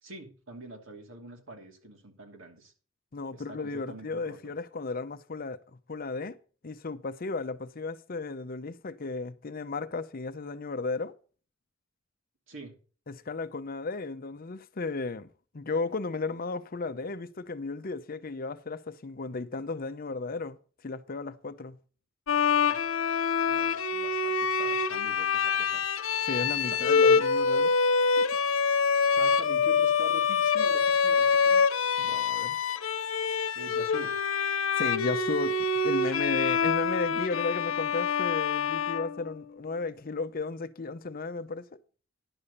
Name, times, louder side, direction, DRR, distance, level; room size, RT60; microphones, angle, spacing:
voice 1, 0.0-2.7 3.3-4.4 12.5-12.7 22.7-22.8 23.5-25.8 26.7-27.0 29.1-31.6 33.5-34.1, right 1 dB, 70° right, 2.8 m, -44 dB
voice 2, 3.1-5.6 5.9-6.4 6.6-11.2 13.1-15.3 15.5-20.6 20.8-21.8 26.3-27.7 28.0-28.3 32.0-32.6 34.7-35.6 35.8-41.8, left 3 dB, 45° left, 0.6 m, -34 dB
Bowed string instrument, 22.3-39.7, left 5 dB, 85° left, 0.9 m, -26 dB
11.0 x 6.9 x 5.5 m
head